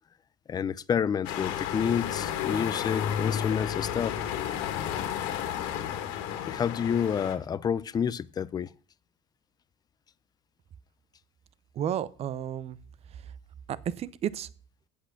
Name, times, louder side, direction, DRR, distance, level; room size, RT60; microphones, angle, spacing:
voice 1, 0.5-4.2 6.4-8.7, left 7 dB, 25° left, 0.5 m, -29 dB
sound 1, 1.2-7.4, left 9 dB, 75° left, 1.9 m, -32 dB
voice 2, 11.7-12.8 13.1-13.3 13.7-14.5, right 9 dB, 35° right, 0.6 m, -32 dB
8.3 x 8.2 x 5.8 m
supercardioid pair, 120°, 17 cm